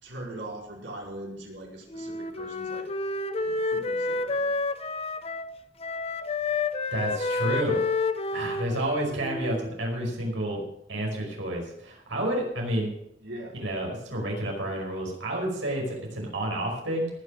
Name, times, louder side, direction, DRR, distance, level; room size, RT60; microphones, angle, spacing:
voice 1, 0.0-2.9 3.4-4.5 13.2-13.5, right 1 dB, 75° right, -2 dB, 4.5 m, -41 dB
Wind instrument woodwind instrument, 1.9-5.6 5.8-9.7, left 3 dB, 35° left, 0.7 m, -29 dB
voice 2, 6.9-7.8 8.3-10.6 10.9-12.9 13.5-17.1, right 1 dB, 90° right, -1 dB, 5.3 m, -30 dB
19.0 x 6.9 x 6.5 m, 0.78 s
head